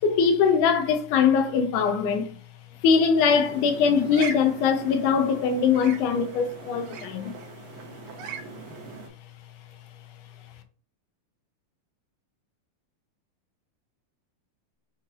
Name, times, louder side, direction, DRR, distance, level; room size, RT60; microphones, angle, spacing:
voice 1, 0.0-2.3 2.8-7.3, left 6 dB, 85° left, 2.2 m, -22 dB
sound 1, 3.2-9.1, right 5 dB, 70° right, 1.7 m, -40 dB
5.7 x 2.4 x 3.1 m
omnidirectional pair, 3.5 m